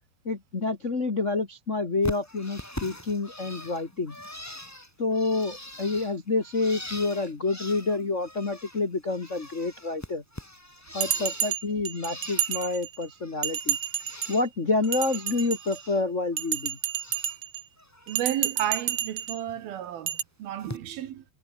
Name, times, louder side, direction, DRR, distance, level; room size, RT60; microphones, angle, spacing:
voice 1, 0.2-4.2 5.0-10.2 10.9-13.8 14.3-16.8, left 3 dB, 65° left, 0.7 m, -28 dB
Bird, 2.0-8.8 9.1-11.6 11.9-12.8 13.1-14.5 14.8-16.0 16.3-17.4 17.8-18.2 19.5-19.6 20.6-20.8, left 1 dB, 20° left, 0.4 m, -42 dB
Bell, 11.0-13.1 13.4-14.4 14.8-15.9 16.4-17.6 18.1-19.4 20.1-20.2, right 10 dB, 85° right, 1.3 m, -30 dB
voice 2, 18.1-21.2, right 11 dB, 65° right, 3.1 m, -32 dB
omnidirectional pair, 5.1 m